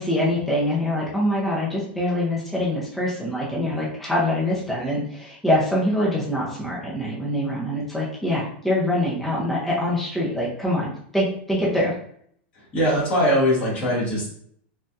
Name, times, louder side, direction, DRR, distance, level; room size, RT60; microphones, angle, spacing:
voice 1, 0.0-11.9, left 1 dB, ahead, -6 dB, 0.5 m, -24 dB
voice 2, 12.7-14.4, equal, 20° left, -9 dB, 1.1 m, -21 dB
3.2 x 2.3 x 2.7 m, 0.63 s
supercardioid pair, 175°, 6 cm